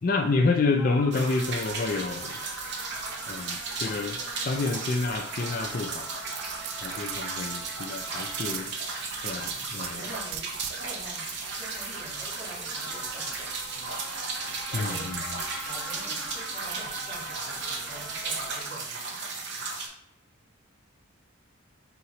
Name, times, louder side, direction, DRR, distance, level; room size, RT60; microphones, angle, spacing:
voice 1, 0.0-2.4 3.3-4.2 4.4-6.1 6.8-8.7 9.2-10.1 14.7-15.2, left 3 dB, 40° left, 4 dB, 0.4 m, -28 dB
sound 1, 0.8-18.6, right 1 dB, ahead, 1.0 m, -45 dB
sound 2, 1.1-19.9, right 4 dB, 55° right, 0.7 m, -35 dB
sound 3, 6.3-7.9 8.3-9.9 10.3-11.2 14.7-16.7 17.2-17.3, right 12 dB, 80° right, 0.3 m, -39 dB
voice 2, 9.6-10.5 10.8-11.3 11.5-13.9 14.7-15.1 15.3-19.3 19.6-19.7, right 1 dB, 35° right, -5 dB, 1.7 m, -46 dB
3.7 x 2.9 x 4.2 m, 0.70 s
head